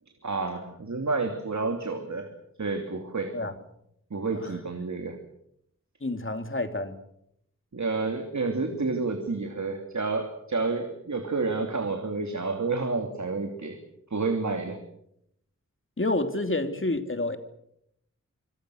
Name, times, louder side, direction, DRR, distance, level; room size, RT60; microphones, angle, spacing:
voice 1, 0.2-2.3 2.6-3.4 4.1-5.2 7.7-13.8 14.1-14.8, right 3 dB, 70° right, 4 dB, 3.1 m, -29 dB
voice 2, 6.0-7.0 16.0-17.4, left 2 dB, 40° left, 7 dB, 3.0 m, -28 dB
26.0 x 26.0 x 6.5 m, 0.77 s
wide cardioid pair, 60°, 30 cm